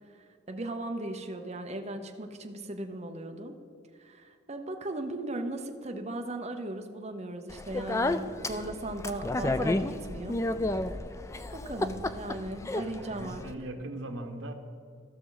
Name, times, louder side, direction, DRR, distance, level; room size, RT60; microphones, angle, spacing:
voice 1, 0.5-3.6 4.0-10.4 11.5-13.4, right 1 dB, 35° right, 4 dB, 0.8 m, -37 dB
Speech, 7.5-13.5, left 2 dB, 15° left, 0.3 m, -32 dB
voice 2, 11.7-12.3 12.8-14.5, right 1 dB, 85° right, 6 dB, 1.1 m, -40 dB
15.5 x 6.3 x 4.0 m, 2.5 s
head